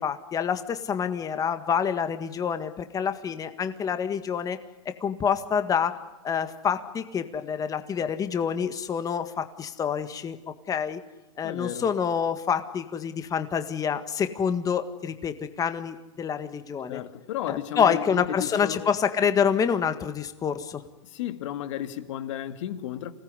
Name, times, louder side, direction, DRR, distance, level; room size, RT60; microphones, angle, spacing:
voice 1, 0.0-4.6 4.9-6.0 6.2-10.4 10.7-11.0 11.4-17.0 17.5-20.8, left 7 dB, 20° left, 1.8 m, -27 dB
voice 2, 11.4-11.9 16.9-18.9 21.0-23.1, left 12 dB, 65° left, 2.5 m, -33 dB
27.5 x 19.0 x 9.8 m
hypercardioid pair, 130°, 17 cm